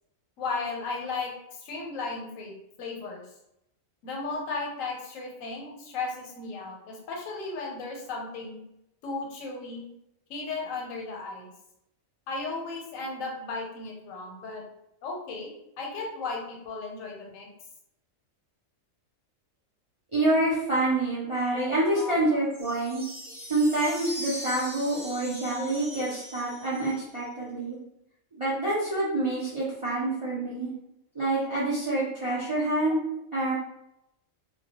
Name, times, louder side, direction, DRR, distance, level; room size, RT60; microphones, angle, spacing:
voice 1, 0.4-3.2 4.0-8.6 9.0-9.9 10.3-11.5 12.3-14.6 15.0-15.5 15.8-17.5 21.6-22.4, left 3 dB, 90° left, 0 dB, 1.0 m, -35 dB
voice 2, 20.1-23.0 23.5-27.8 28.4-30.7 31.1-33.0 33.3-33.5, right 2 dB, 40° right, -9 dB, 0.4 m, -27 dB
sound 1, 22.5-27.2, equal, ahead, 0.7 m, -41 dB
2.2 x 2.1 x 2.8 m, 0.81 s
omnidirectional pair, 1.4 m